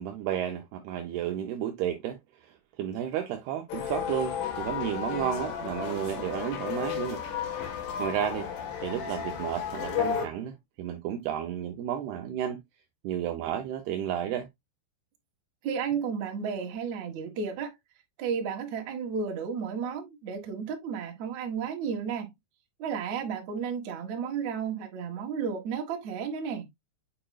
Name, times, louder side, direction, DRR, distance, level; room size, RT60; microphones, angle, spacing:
voice 1, 0.0-7.2 8.0-8.5 8.8-12.6 13.0-14.5, right 10 dB, 85° right, 2.3 m, -32 dB
sound 1, 3.7-10.3, left 8 dB, 90° left, 4.5 m, -33 dB
voice 2, 15.6-17.7 18.2-22.3 22.8-26.7, right 6 dB, 60° right, 2.0 m, -33 dB
8.9 x 4.8 x 2.2 m
omnidirectional pair, 5.5 m